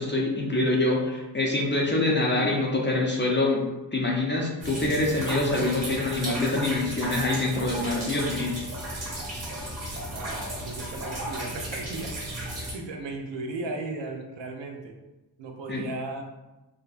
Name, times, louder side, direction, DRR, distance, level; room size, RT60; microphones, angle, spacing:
voice 1, 0.0-3.6 3.9-8.6 15.7-15.8, left 2 dB, 25° left, -2 dB, 0.5 m, -25 dB
sound 1, 4.6-12.7, right 1 dB, 35° right, 0.8 m, -34 dB
voice 2, 10.1-12.2 12.7-15.0 15.4-16.2, right 2 dB, 70° right, 3 dB, 0.6 m, -36 dB
2.6 x 2.2 x 2.4 m, 1.0 s
cardioid pair, 60°, 45 cm